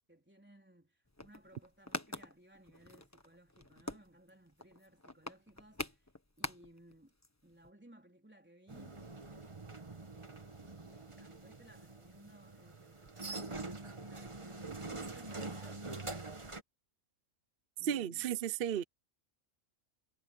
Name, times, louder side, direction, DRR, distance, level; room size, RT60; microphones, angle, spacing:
voice 1, 0.1-6.1 6.4-7.2 7.4-9.7 10.1-15.9 17.8-18.3, right 1 dB, 5° right, 4.0 m, -61 dB
sound 1, 1.1-6.9 7.2-7.3 7.5-7.7, left 1 dB, 10° left, 1.3 m, -44 dB
sound 2, 8.7-16.6, right 3 dB, 25° right, 1.3 m, -45 dB
voice 2, 17.9-18.8, right 9 dB, 50° right, 0.8 m, -34 dB
omnidirectional pair, 1.4 m